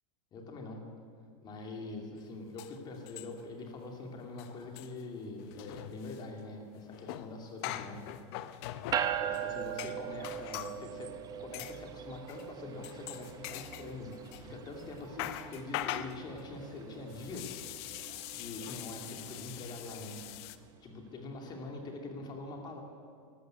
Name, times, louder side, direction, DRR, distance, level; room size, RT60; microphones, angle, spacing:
voice 1, 0.3-0.8 1.4-8.0 9.2-14.1 14.4-17.6 18.3-20.1 20.8-22.8, left 3 dB, 25° left, 2 dB, 2.4 m, -44 dB
sound 1, 2.2-2.3 2.6-3.6 3.9-4.0 4.3-10.8 11.5-11.8 12.3-12.5 12.8-14.5 14.8-20.6, left 13 dB, 50° left, 0.7 m, -43 dB
sound 2, 8.9-20.5, right 9 dB, 20° right, 0.8 m, -41 dB
13.0 x 12.5 x 8.1 m, 2.3 s
supercardioid pair, 150°, 17 cm